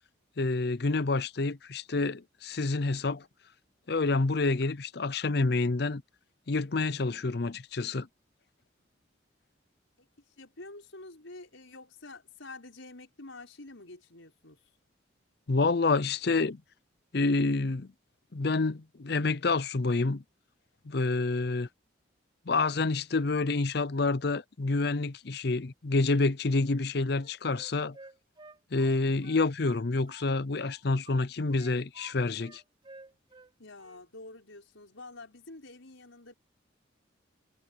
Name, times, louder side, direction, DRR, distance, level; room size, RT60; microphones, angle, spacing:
voice 1, 0.4-3.2 3.9-6.0 6.5-8.1 15.5-16.6 17.1-17.9 18.3-20.2 20.9-21.7 22.5-28.0 28.7-32.6, left 3 dB, 55° left, 0.6 m, -28 dB
voice 2, 10.4-14.6 33.6-36.3, left 2 dB, 85° left, 5.5 m, -48 dB
Wind instrument woodwind instrument, 27.1-30.3 30.6-32.1 32.4-33.5 33.8-34.1, right 3 dB, 25° right, 3.3 m, -52 dB
head